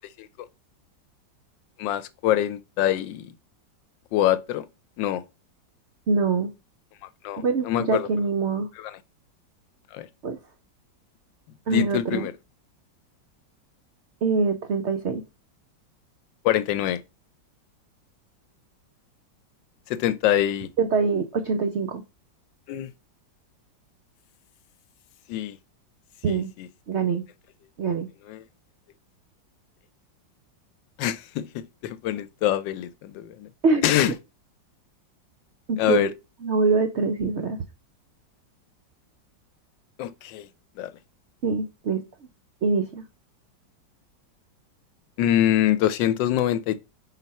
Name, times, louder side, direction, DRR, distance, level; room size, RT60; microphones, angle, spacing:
voice 1, 1.8-3.3 4.1-4.7 5.0-5.2 7.2-8.1 8.8-8.9 9.9-10.1 11.7-12.3 16.4-17.0 19.9-20.7 22.7-22.9 25.3-25.6 26.3-26.7 28.3-28.4 31.0-33.5 33.8-34.1 35.8-36.1 40.0-40.5 40.8-40.9 45.2-46.8, left 12 dB, 80° left, 1.3 m, -24 dB
voice 2, 6.1-6.5 7.4-8.7 10.2-10.4 11.7-12.3 14.2-15.2 20.8-22.0 26.2-26.5 26.9-27.2 27.8-28.1 33.6-33.8 35.7-36.1 36.4-37.6 41.4-42.0 42.6-43.0, right 4 dB, 80° right, 0.6 m, -24 dB
4.3 x 4.1 x 5.4 m
omnidirectional pair, 2.0 m